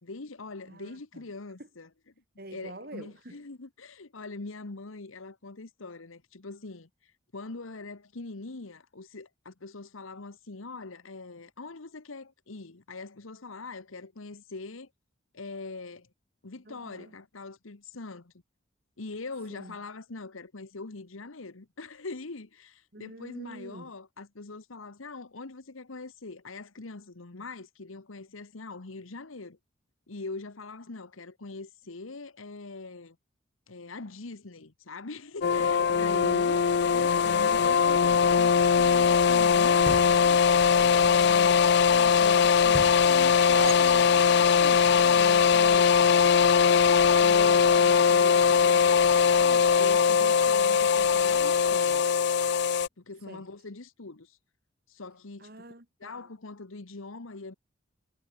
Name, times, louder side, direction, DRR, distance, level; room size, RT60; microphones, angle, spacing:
voice 1, 0.0-1.9 2.5-14.9 15.3-16.1 16.4-18.3 19.0-29.6 30.1-33.2 33.7-36.2 36.9-40.4 41.1-45.9 46.4-52.0 53.0-54.4 54.9-55.5 56.0-57.5, left 3 dB, 90° left, 1.3 m, -43 dB
voice 2, 0.7-1.3 1.6-1.7 2.4-3.4 16.6-17.1 19.5-19.8 22.9-23.9 35.9-36.6 40.7-41.3 53.2-53.4 55.4-56.3, right 1 dB, 50° right, 4.2 m, -45 dB
sound 1, 35.4-52.9, left 6 dB, 55° left, 0.4 m, -21 dB
sound 2, 39.9-40.8 42.7-43.7, equal, 5° left, 0.8 m, -38 dB
sound 3, 43.1-45.4, right 4 dB, 80° right, 7.7 m, -38 dB
head